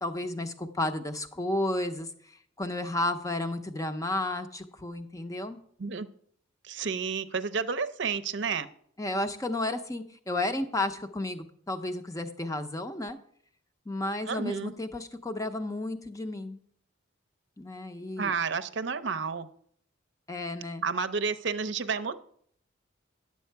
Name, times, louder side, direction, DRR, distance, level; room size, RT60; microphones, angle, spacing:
voice 1, 0.0-2.1 2.6-5.6 9.0-13.2 13.9-16.6 17.6-18.3 20.3-20.8, left 2 dB, 15° left, 8 dB, 0.6 m, -32 dB
voice 2, 6.7-8.7 14.3-14.7 18.2-19.5 20.8-22.2, right 5 dB, 65° right, 12 dB, 0.6 m, -31 dB
10.5 x 7.4 x 4.5 m, 0.63 s
head